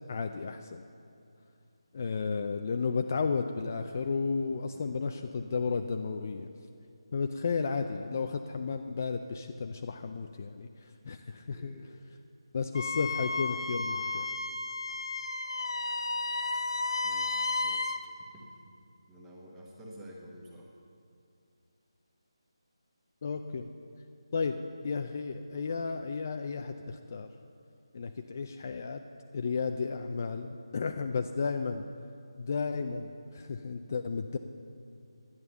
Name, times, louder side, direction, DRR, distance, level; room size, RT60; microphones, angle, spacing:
voice 1, 0.1-0.8 1.9-6.5 7.1-11.7 12.5-14.2 23.2-23.7 24.3-24.6 24.8-27.3 27.9-29.0 29.3-31.8 32.4-34.4, left 5 dB, 30° left, 6 dB, 0.4 m, -33 dB
voice 2, 4.7-5.1 11.5-12.0 17.0-17.8 18.3-18.7 19.1-20.7, equal, 5° right, -3 dB, 1.0 m, -50 dB
Wind instrument woodwind instrument, 12.7-18.0, left 3 dB, 70° left, 0.8 m, -33 dB
11.0 x 9.4 x 6.9 m, 2.5 s
figure-of-eight pair, 170°, 3 cm